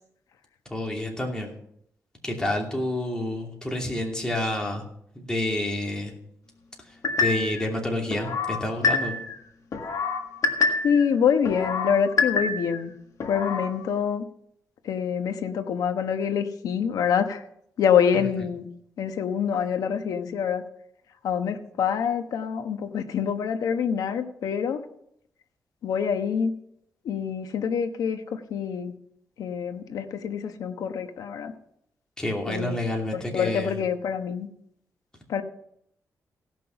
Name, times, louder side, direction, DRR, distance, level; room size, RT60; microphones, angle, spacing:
voice 1, 0.7-1.5 2.2-4.8 5.1-6.1 7.2-9.1 32.2-33.7, left 1 dB, 10° left, 0 dB, 2.7 m, -28 dB
sound 1, 7.0-7.6 8.1-9.3 9.7-11.0 11.5-12.8 13.2-13.7, left 4 dB, 60° left, 1.6 m, -26 dB
voice 2, 10.8-12.9 13.2-14.2 14.8-17.4 17.8-18.7 19.0-20.6 21.2-24.8 25.8-26.5 27.0-28.9 29.4-31.5 32.5-32.9 33.1-34.5 35.3-35.4, left 7 dB, 90° left, 8 dB, 1.1 m, -26 dB
16.5 x 6.1 x 5.8 m, 0.73 s
cardioid pair, 105°, 6 cm